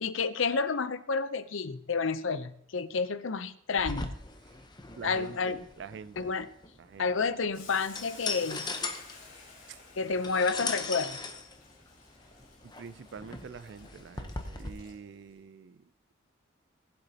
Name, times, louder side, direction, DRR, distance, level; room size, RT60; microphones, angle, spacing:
voice 1, 0.0-4.1 5.0-5.6 6.2-6.5 7.0-8.7 10.0-11.2, left 4 dB, 75° left, 13 dB, 0.7 m, -30 dB
sound 1, 3.8-14.7, left 3 dB, 20° left, 0.8 m, -39 dB
voice 2, 5.0-6.5 6.8-7.1 9.7-9.8 12.6-15.9, right 6 dB, 60° right, 15 dB, 0.3 m, -46 dB
Boiling, 7.5-15.3, left 4 dB, 45° left, 3.1 m, -53 dB
19.0 x 8.1 x 2.9 m, 0.70 s
head